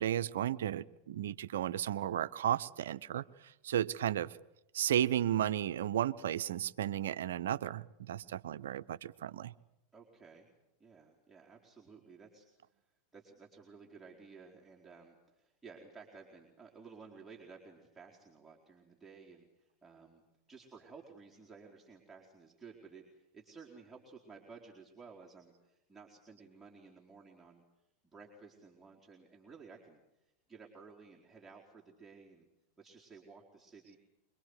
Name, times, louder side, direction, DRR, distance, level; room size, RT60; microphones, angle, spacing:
voice 1, 0.0-4.4 4.7-9.5, right 11 dB, 70° right, 13 dB, 0.8 m, -34 dB
voice 2, 9.9-10.5 10.8-12.8 13.1-20.2 20.5-27.6 28.1-32.5 32.8-34.0, right 5 dB, 10° right, -3 dB, 4.5 m, -55 dB
25.5 x 23.0 x 8.2 m, 0.89 s
hypercardioid pair, 90°, 0 cm